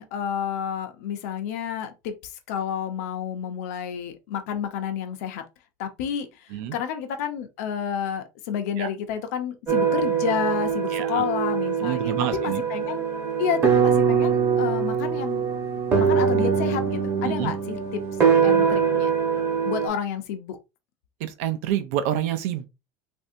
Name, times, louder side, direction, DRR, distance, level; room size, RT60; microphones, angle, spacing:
voice 1, 0.0-5.4 5.8-13.0 13.4-15.4 15.9-18.0 18.4-19.2 19.6-20.6, left 8 dB, 90° left, 0.7 m, -30 dB
sound 1, 9.7-19.9, right 6 dB, 25° right, 1.1 m, -23 dB
voice 2, 10.9-11.2 11.8-12.6 17.2-17.5 21.2-22.7, right 11 dB, 75° right, 0.6 m, -28 dB
3.3 x 2.6 x 2.6 m
cardioid pair, 170°, 8 cm